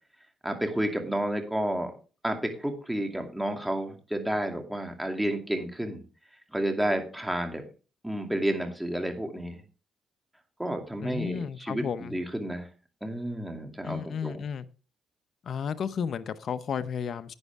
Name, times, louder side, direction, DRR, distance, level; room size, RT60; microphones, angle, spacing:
voice 1, 0.4-1.9 2.2-6.0 6.5-7.6 8.0-9.6 10.6-12.7 13.0-14.4, right 1 dB, 5° right, 2.5 m, -31 dB
voice 2, 11.0-12.2 13.8-14.7 15.4-17.3, left 7 dB, 55° left, 0.7 m, -33 dB
11.0 x 9.4 x 3.5 m
cardioid pair, 90°, 0 cm